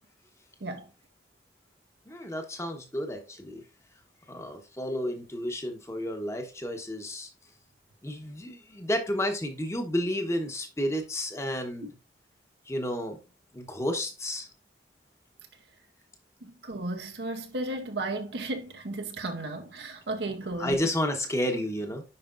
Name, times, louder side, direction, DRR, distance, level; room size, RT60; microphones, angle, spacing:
voice 1, 2.1-3.6 4.3-7.3 8.0-11.9 12.7-13.2 13.5-14.5 20.6-22.0, left 1 dB, 15° left, 1.1 m, -31 dB
voice 2, 16.4-20.8, right 2 dB, 65° right, 0.8 m, -34 dB
10.0 x 5.1 x 2.5 m
head